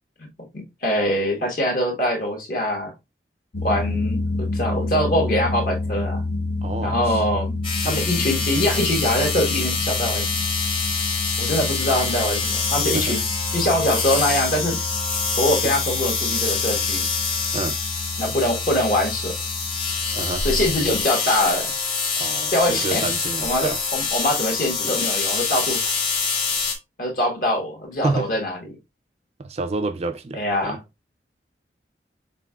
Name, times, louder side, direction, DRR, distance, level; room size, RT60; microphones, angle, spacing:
voice 1, 0.5-2.9 3.6-6.2 6.8-7.6 7.8-10.3 11.4-13.2 13.5-14.8 15.4-17.1 18.2-19.3 20.4-21.7 22.5-23.0 23.4-25.9 27.0-28.6 30.3-30.8, left 1 dB, 50° left, 1.4 m, -23 dB
sound 1, 3.5-21.0, left 2 dB, 75° left, 0.9 m, -29 dB
voice 2, 6.6-7.2 7.8-8.0 12.9-13.2 15.6-15.7 17.5-17.8 20.1-20.4 22.2-23.8 28.0-28.4 29.4-30.8, right 3 dB, 35° right, 0.4 m, -29 dB
sound 2, 7.6-26.7, left 4 dB, 30° left, 1.2 m, -26 dB
5.9 x 3.7 x 2.3 m
head